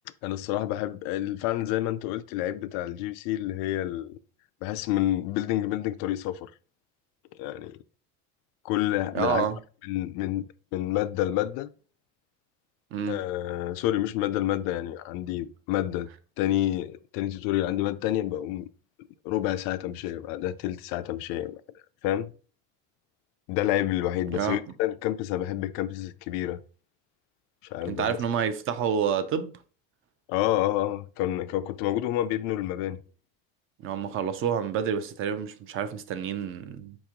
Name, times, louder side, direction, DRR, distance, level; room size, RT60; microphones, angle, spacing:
voice 1, 0.2-4.2 4.6-6.5 7.4-7.8 8.6-9.5 9.8-10.5 10.7-11.7 13.1-16.1 16.4-18.7 19.2-21.6 22.0-22.3 23.5-26.6 27.6-28.2 30.3-33.0, left 14 dB, 80° left, 0.5 m, -28 dB
voice 2, 9.1-9.6 12.9-13.2 24.3-24.6 27.8-29.5 33.8-37.0, right 8 dB, 40° right, 0.4 m, -28 dB
4.3 x 3.0 x 3.6 m
cardioid pair, 155°, 35 cm